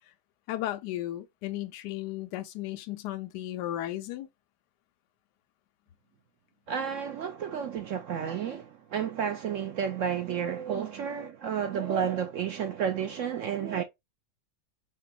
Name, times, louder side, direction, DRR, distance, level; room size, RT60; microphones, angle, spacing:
voice 1, 0.5-4.3, left 14 dB, 80° left, 1.2 m, -35 dB
voice 2, 6.7-13.8, right 8 dB, 75° right, 0.7 m, -31 dB
4.5 x 2.9 x 2.3 m
omnidirectional pair, 1.8 m